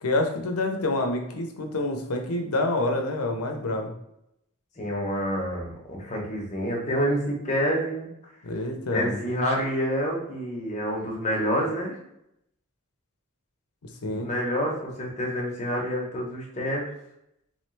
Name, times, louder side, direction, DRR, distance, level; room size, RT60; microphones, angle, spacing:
voice 1, 0.0-3.9 8.4-9.2 14.0-14.3, left 2 dB, 85° left, 4 dB, 0.7 m, -27 dB
voice 2, 4.8-8.1 8.9-12.0 14.0-16.9, equal, 35° left, -2 dB, 1.0 m, -28 dB
3.6 x 3.1 x 3.2 m, 0.81 s
head